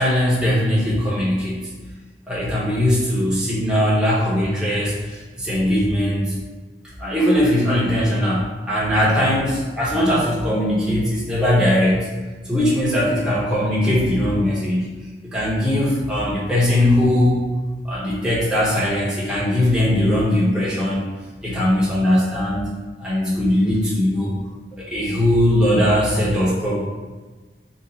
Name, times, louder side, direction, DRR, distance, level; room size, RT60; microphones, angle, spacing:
voice 1, 0.0-1.7 2.3-6.4 7.0-12.1 12.5-14.9 15.3-17.4 17.8-21.1 21.4-22.7 23.0-24.3 24.7-26.7, left 1 dB, 5° right, -8 dB, 0.8 m, -20 dB
2.8 x 2.5 x 3.9 m, 1.3 s
head